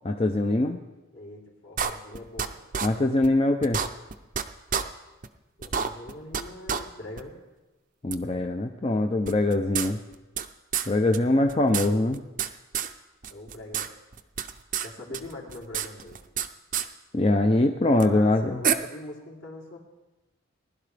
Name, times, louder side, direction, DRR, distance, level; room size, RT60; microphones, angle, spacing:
voice 1, 0.2-0.8 2.8-3.8 8.0-10.0 10.9-12.2 17.1-18.6, left 2 dB, 25° left, 5 dB, 0.5 m, -23 dB
voice 2, 1.1-2.6 5.6-7.4 13.3-13.9 14.8-16.2 18.0-19.8, left 2 dB, 60° left, -2 dB, 3.0 m, -42 dB
sound 1, 1.8-2.5 2.7-2.9 3.2-3.3 3.6-4.4 4.7-4.8 5.2-5.3 5.6-6.4 6.7-6.8 7.2-7.3 8.1-8.2 9.3-10.5 10.7-10.9 11.1-11.2 11.5-12.5 12.7-12.9 13.2-13.9 14.1-14.9 15.1-16.5 16.7-16.9 18.0-18.1 18.6-18.7, right 8 dB, 40° right, 0.5 m, -28 dB
20.0 x 11.5 x 3.4 m, 1.1 s
head